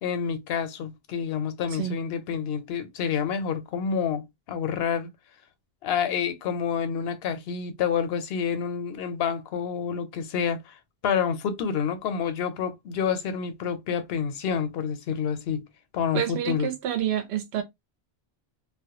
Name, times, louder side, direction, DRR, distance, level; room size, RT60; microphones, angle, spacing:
voice 1, 0.0-5.1 5.8-15.6 15.9-16.7, left 7 dB, 75° left, 0.8 m, -28 dB
voice 2, 16.1-17.6, right 10 dB, 85° right, 0.8 m, -28 dB
2.1 x 2.1 x 2.8 m
omnidirectional pair, 1.0 m